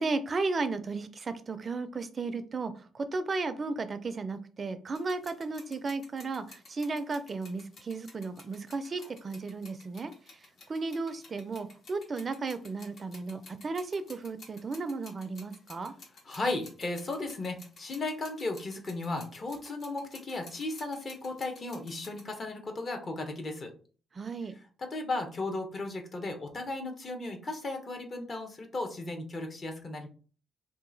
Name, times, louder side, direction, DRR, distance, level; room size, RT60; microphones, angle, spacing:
voice 1, 0.0-15.9 24.1-24.5, right 3 dB, 40° right, 11 dB, 0.4 m, -34 dB
sound 1, 4.9-22.3, left 3 dB, 60° left, 1.2 m, -53 dB
voice 2, 16.3-23.7 24.8-30.1, left 2 dB, 40° left, 4 dB, 0.9 m, -35 dB
2.8 x 2.4 x 3.9 m, 0.39 s
cardioid pair, 90°, 0 cm